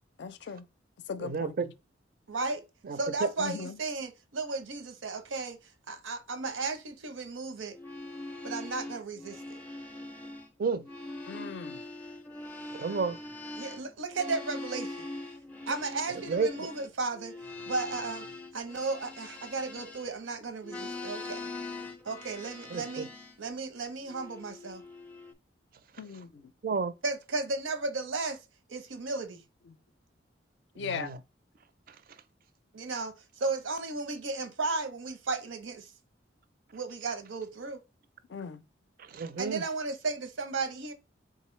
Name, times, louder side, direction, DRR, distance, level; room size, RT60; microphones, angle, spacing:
voice 1, 0.2-0.6 1.1-1.7 3.4-3.8 11.3-11.8 26.0-26.5 29.7-29.8 30.8-31.1 38.3-38.6, left 5 dB, 60° left, 0.4 m, -38 dB
voice 2, 1.2-1.7 2.8-3.3 10.6-10.8 12.8-13.2 16.3-16.7 22.7-23.1 26.6-26.9 30.8-31.2 39.0-39.6, right 4 dB, 50° right, 0.4 m, -31 dB
voice 3, 2.3-2.6 3.0-5.6 5.9-7.7 8.4-9.6 13.6-15.1 15.7-17.3 17.6-18.3 18.5-21.5 22.1-23.1 23.4-24.8 27.0-28.4 28.7-29.4 32.7-35.9 36.7-37.8 39.4-40.9, right 3 dB, 90° right, 0.8 m, -34 dB
sound 1, 7.7-10.5 10.8-20.3 20.6-23.4 24.1-25.3, left 2 dB, 10° left, 0.5 m, -42 dB
3.7 x 3.7 x 3.1 m
head